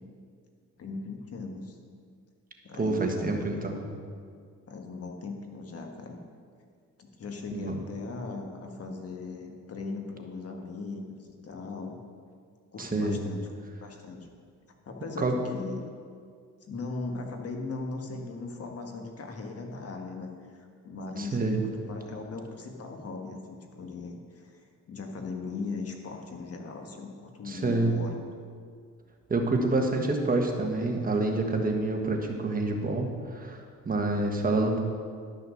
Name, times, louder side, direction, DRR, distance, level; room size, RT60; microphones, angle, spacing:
voice 1, 0.8-1.8 2.6-3.7 4.7-6.2 7.0-12.0 12.7-13.4 13.8-14.3 14.8-15.9 16.7-24.6 24.9-28.2, left 3 dB, 50° left, 3 dB, 1.5 m, -38 dB
voice 2, 2.7-3.8 7.5-7.7 12.8-13.2 15.2-15.3 21.2-21.6 27.4-28.0 29.3-34.8, right 2 dB, 30° right, 2 dB, 1.5 m, -27 dB
12.0 x 6.4 x 6.4 m, 2.1 s
cardioid pair, 90°, 30 cm